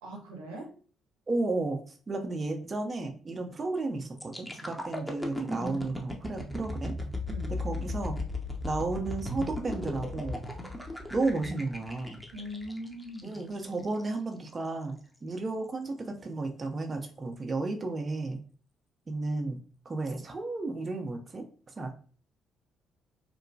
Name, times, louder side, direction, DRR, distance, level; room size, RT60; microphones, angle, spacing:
voice 1, 0.0-0.7 7.3-7.5 12.3-13.4, equal, 90° right, -1 dB, 0.6 m, -41 dB
voice 2, 1.3-1.8 2.1-6.9 7.5-8.2 8.6-10.4 11.1-12.2 13.2-15.0 15.2-18.4 19.1-19.6 19.9-21.4 21.8-21.9, right 3 dB, 35° right, 4 dB, 0.5 m, -33 dB
sound 1, 4.2-14.0 14.5-14.7, left 2 dB, 10° left, 0.6 m, -37 dB
2.9 x 2.1 x 2.6 m, 0.42 s
hypercardioid pair, 50°, 0 cm